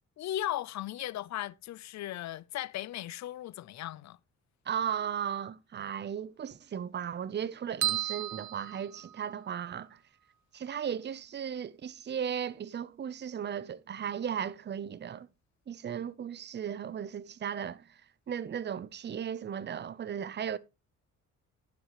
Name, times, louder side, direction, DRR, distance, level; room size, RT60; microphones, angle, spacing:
voice 1, 0.2-4.2, left 13 dB, 65° left, 0.6 m, -37 dB
voice 2, 4.7-10.0 10.5-15.3 15.7-17.8 18.3-20.6, right 8 dB, 35° right, 0.6 m, -36 dB
sound 1, 7.8-9.6, right 14 dB, 70° right, 0.9 m, -34 dB
11.5 x 9.4 x 3.0 m
cardioid pair, 90°, 30 cm